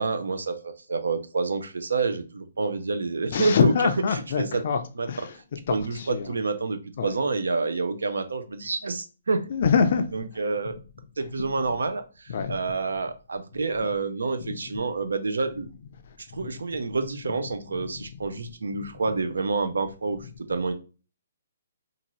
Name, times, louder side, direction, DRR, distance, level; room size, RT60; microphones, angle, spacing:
voice 1, 0.0-3.7 4.4-4.6 5.0-5.1 5.7-9.5 10.1-10.7 11.2-15.7 16.3-20.2 20.5-20.7, right 3 dB, 85° right, 0.5 m, -28 dB
voice 2, 3.3-4.8 5.1-5.4 5.7-6.4 7.0-7.2 9.5-10.3 12.3-12.6 13.8-13.9 14.4-14.6 16.1-16.5 17.7-18.2, left 6 dB, 50° left, 0.4 m, -25 dB
2.6 x 2.4 x 3.0 m
hypercardioid pair, 150°, 0 cm